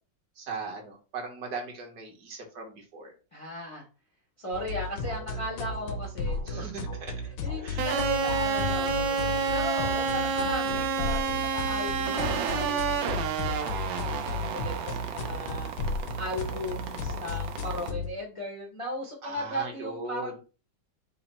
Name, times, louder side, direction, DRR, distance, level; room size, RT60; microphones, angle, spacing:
voice 1, 0.4-3.1 6.5-6.9 7.6-7.9 19.2-20.3, right 4 dB, 60° right, 1 dB, 1.5 m, -38 dB
voice 2, 3.3-3.9 4.4-6.8 7.4-15.7 16.2-20.4, left 1 dB, 55° left, -2 dB, 0.3 m, -37 dB
sound 1, 4.5-18.1, left 3 dB, 75° left, 1.3 m, -34 dB
sound 2, 7.8-17.9, right 6 dB, 90° right, 1.4 m, -30 dB
4.0 x 2.0 x 4.1 m, 0.34 s
omnidirectional pair, 2.0 m